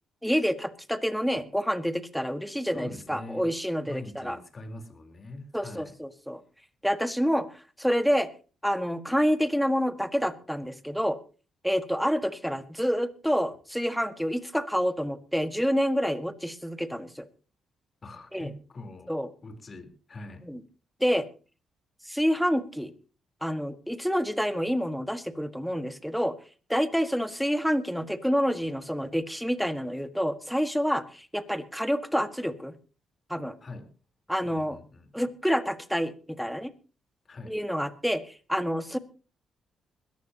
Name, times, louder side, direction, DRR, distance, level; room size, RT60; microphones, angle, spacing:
voice 1, 0.2-4.4 5.5-6.4 6.8-7.5 7.8-8.3 8.6-11.2 11.6-17.2 18.3-18.5 19.1-19.3 20.5-20.6 21.0-21.3 22.1-22.9 23.4-26.3 26.7-32.7 33.3-33.5 34.3-34.8 35.1-36.7 37.5-38.2 38.5-39.0, equal, ahead, 11 dB, 1.6 m, -28 dB
voice 2, 2.6-3.5 3.9-6.0 18.0-19.1 19.4-20.5 33.6-33.9 34.4-35.3 37.3-37.6, left 2 dB, 40° left, 7 dB, 3.7 m, -43 dB
21.5 x 14.0 x 2.9 m, 0.35 s
cardioid pair, 80°, 0 cm